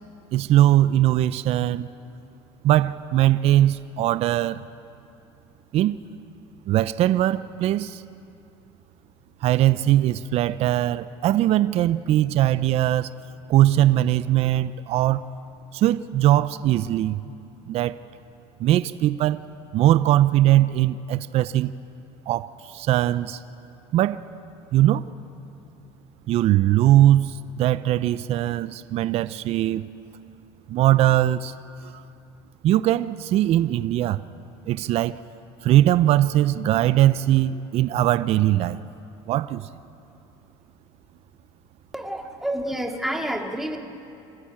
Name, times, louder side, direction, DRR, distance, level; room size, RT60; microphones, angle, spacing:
voice 1, 0.3-1.9 2.6-4.6 5.7-6.0 6.7-8.0 9.4-13.1 13.5-15.2 15.7-17.2 17.7-18.0 18.6-19.4 19.7-21.7 22.3-23.4 23.9-24.2 24.7-25.1 26.3-29.8 30.7-31.5 31.9-32.0 32.6-34.2 34.7-35.2 35.6-38.8 39.3-39.7, right 13 dB, 55° right, 0.6 m, -20 dB
voice 2, 41.9-43.8, right 1 dB, 5° right, 2.5 m, -29 dB
26.5 x 15.0 x 8.8 m
supercardioid pair, 95°, 12 cm